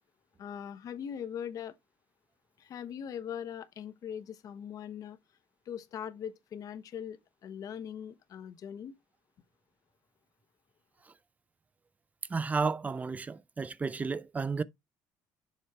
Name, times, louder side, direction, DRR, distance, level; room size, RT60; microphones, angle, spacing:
voice 1, 0.4-1.8 2.6-5.2 5.7-8.9, left 8 dB, 50° left, 1.0 m, -41 dB
voice 2, 12.3-14.6, right 4 dB, 20° right, 0.5 m, -32 dB
7.2 x 3.3 x 4.3 m
cardioid pair, 115°, 8 cm